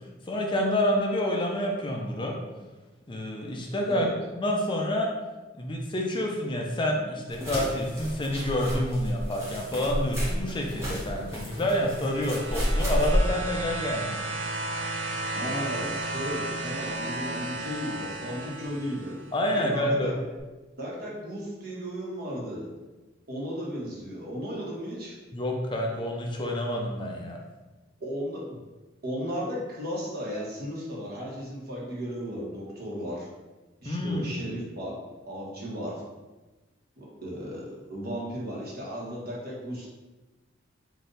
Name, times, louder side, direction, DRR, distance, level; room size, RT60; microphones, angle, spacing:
voice 1, 0.3-2.3 3.1-4.1 4.3-5.1 5.6-14.1 19.3-20.1 25.3-27.4 33.8-34.3, left 1 dB, 25° left, 0 dB, 0.4 m, -28 dB
sound 1, 7.3-13.2, equal, 15° right, 1.3 m, -31 dB
sound 2, 11.6-19.3 20.4-20.5, right 2 dB, 90° right, 0.5 m, -34 dB
voice 2, 15.3-19.1 19.5-20.1 20.8-22.7 23.3-25.2 28.0-28.6 29.0-33.3 33.8-34.9 35.2-36.0 37.0-39.9, equal, 55° right, -5 dB, 1.2 m, -35 dB
3.9 x 2.6 x 3.9 m, 1.2 s
head